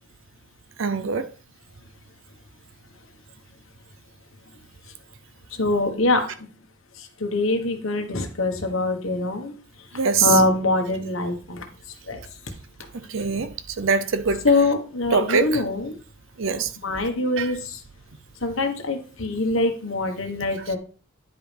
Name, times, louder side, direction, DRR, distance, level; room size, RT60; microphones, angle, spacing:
voice 1, 0.8-1.3 10.0-10.3 13.1-14.4 15.1-15.6 16.4-16.7 17.4-17.5, right 5 dB, 65° right, 0.6 m, -23 dB
voice 2, 5.6-6.5 7.0-9.5 10.2-11.7 12.1-12.2 14.4-16.0 16.6-17.8 18.4-20.8, left 2 dB, 70° left, 1.2 m, -24 dB
10.0 x 5.1 x 3.4 m
head